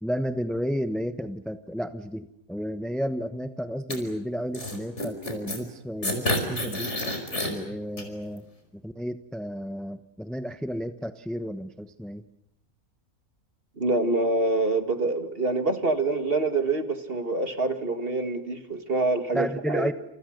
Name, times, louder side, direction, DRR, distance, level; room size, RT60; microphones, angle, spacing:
voice 1, 0.0-6.9 7.5-8.4 8.8-12.2 19.3-19.9, equal, ahead, 9 dB, 0.9 m, -32 dB
sound 1, 3.9-4.0 4.5-5.6 6.0-7.5 8.0-8.1, left 1 dB, 50° left, 5.5 m, -28 dB
voice 2, 13.8-19.9, right 3 dB, 40° right, 7 dB, 2.3 m, -26 dB
29.5 x 28.5 x 6.6 m, 0.85 s
omnidirectional pair, 1.5 m